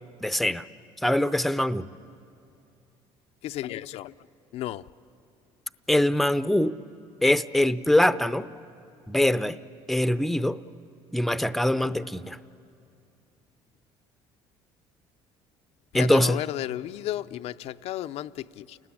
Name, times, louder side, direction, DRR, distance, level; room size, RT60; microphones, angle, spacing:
voice 1, 0.2-0.7 1.0-1.9 5.9-6.7 7.2-8.5 9.1-9.6 9.9-10.6 11.1-12.4 15.9-16.4, left 1 dB, ahead, 0.6 m, -23 dB
voice 2, 3.4-4.1 4.5-4.9 15.9-18.8, left 13 dB, 65° left, 0.5 m, -33 dB
29.0 x 19.0 x 8.6 m
cardioid pair, 100°, 11 cm